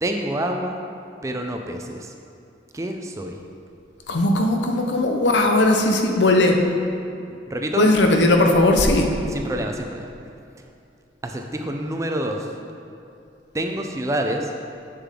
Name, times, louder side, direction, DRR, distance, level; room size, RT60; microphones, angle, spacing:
voice 1, 0.0-0.8 1.2-2.1 2.7-3.4 7.5-7.9 9.3-10.1 11.2-12.4 13.5-14.5, right 1 dB, 15° right, 3 dB, 0.4 m, -27 dB
voice 2, 4.1-6.6 7.8-9.1, left 2 dB, 75° left, 3 dB, 0.8 m, -18 dB
7.7 x 6.8 x 3.7 m, 2.6 s
head